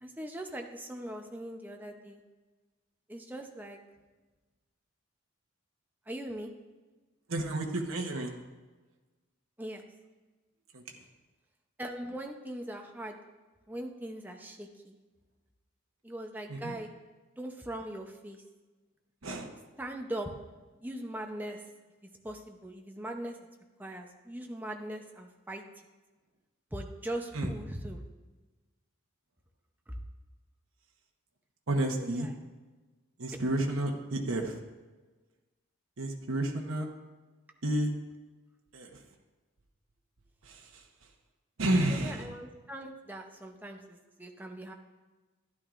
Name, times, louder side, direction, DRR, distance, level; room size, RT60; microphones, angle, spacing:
voice 1, 0.0-2.2 3.1-3.8 6.1-6.5 9.6-9.8 11.8-13.2 13.7-15.0 16.0-16.9 17.4-18.4 19.8-20.3 20.8-21.6 22.2-23.4 23.8-25.6 26.7-28.0 29.9-30.0 32.0-32.3 41.9-44.7, right 1 dB, 10° right, 2 dB, 0.6 m, -40 dB
voice 2, 7.3-8.4 10.7-10.8 16.5-16.8 19.2-19.5 27.3-27.5 31.7-32.3 33.2-34.6 36.0-36.9 37.6-37.9 38.7-39.0 40.4-40.9 41.6-42.3, right 1 dB, 75° right, 1 dB, 1.0 m, -31 dB
12.0 x 11.0 x 2.5 m, 1.3 s
head